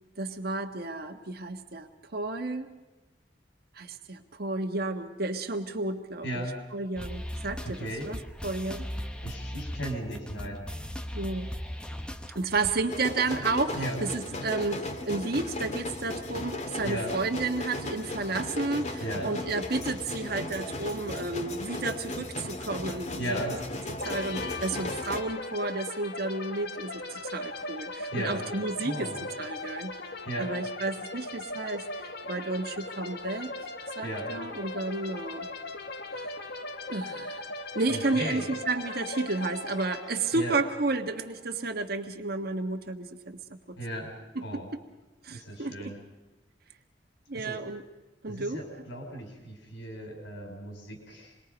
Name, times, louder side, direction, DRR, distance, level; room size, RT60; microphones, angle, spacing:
voice 1, 0.2-2.7 3.7-6.4 6.7-8.9 11.1-11.5 12.3-23.4 24.0-29.1 29.4-29.9 30.4-33.5 34.0-35.5 36.1-36.3 36.9-37.5 37.7-43.4 43.7-43.8 44.3-44.6 45.2-46.0 47.3-47.8 48.2-48.6, right 3 dB, 60° right, 4 dB, 1.5 m, -32 dB
voice 2, 6.2-6.6 7.6-8.1 9.2-10.7 13.8-14.0 16.8-17.1 19.0-19.3 23.2-23.6 28.1-28.4 28.8-29.3 30.2-30.5 34.0-34.3 37.9-38.4 40.3-40.6 43.8-44.7 45.3-46.0 47.3-47.6 48.3-51.3, right 1 dB, 80° left, 3 dB, 5.3 m, -36 dB
sound 1, 6.9-12.8, equal, 5° left, 1.1 m, -38 dB
sound 2, 12.9-25.2, left 2 dB, 40° left, 2.0 m, -36 dB
sound 3, 24.0-41.6, left 2 dB, 65° left, 1.6 m, -39 dB
27.0 x 22.0 x 5.3 m, 1.1 s
head